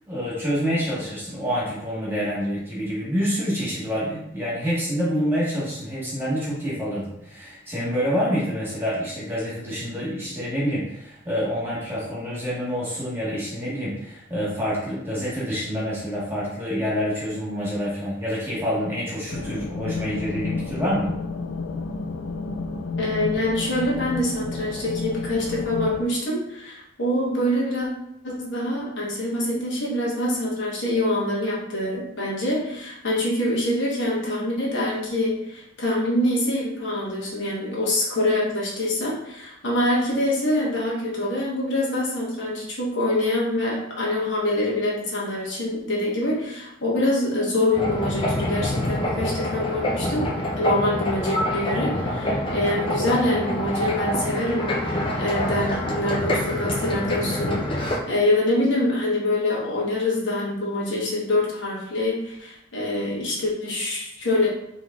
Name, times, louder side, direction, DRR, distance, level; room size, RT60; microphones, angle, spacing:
voice 1, 0.1-21.1, equal, 10° right, -7 dB, 1.4 m, -27 dB
sound 1, 19.3-26.0, left 4 dB, 90° left, 0.4 m, -31 dB
voice 2, 23.0-27.9 28.2-64.5, left 1 dB, 65° left, -5 dB, 1.3 m, -25 dB
sound 2, 47.7-58.0, left 1 dB, 25° left, 0.6 m, -26 dB
3.7 x 3.0 x 3.7 m, 0.82 s
head